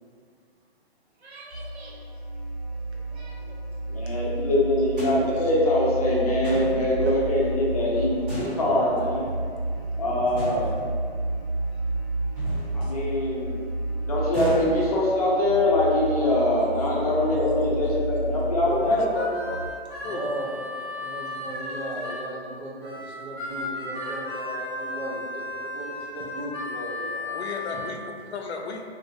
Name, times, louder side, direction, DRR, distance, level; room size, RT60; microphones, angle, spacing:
voice 1, 1.2-2.2 2.7-3.6 4.2-4.3 5.2-5.5 7.0-7.1 9.3-10.7 11.4-11.8 12.5-12.9 13.2-13.3 16.6-16.7 20.0-27.3, right 1 dB, 80° right, -3 dB, 0.8 m, -38 dB
sound 1, 1.5-19.7, right 2 dB, 10° left, 1.1 m, -31 dB
voice 2, 3.9-9.3 10.0-10.7 12.7-13.5 14.1-19.0, left 1 dB, 35° left, -5 dB, 0.5 m, -23 dB
sound 2, 5.0-5.8 6.4-7.3 8.3-9.4 10.4-11.3 12.3-13.4 14.3-15.4, right 1 dB, 55° right, 1.3 m, -38 dB
voice 3, 18.6-19.6 20.0-20.2 27.3-28.8, left 4 dB, 90° left, 3 dB, 0.5 m, -34 dB
Harmonica, 18.8-22.3 22.8-27.9, left 2 dB, 20° right, 0.7 m, -35 dB
2.8 x 2.3 x 2.6 m, 2.2 s
hypercardioid pair, 175°, 32 cm